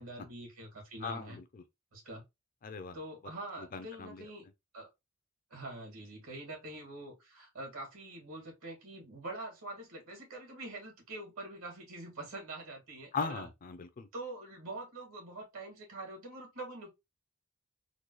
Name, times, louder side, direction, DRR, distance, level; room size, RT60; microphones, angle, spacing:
voice 1, 0.0-1.4 1.9-2.2 2.9-4.5 4.7-4.9 5.5-13.5 14.1-16.9, right 2 dB, 75° right, 2.0 m, -45 dB
voice 2, 1.0-1.6 2.6-3.0 3.6-4.2 13.1-14.1, left 5 dB, 40° left, 0.4 m, -39 dB
3.8 x 2.3 x 3.0 m
head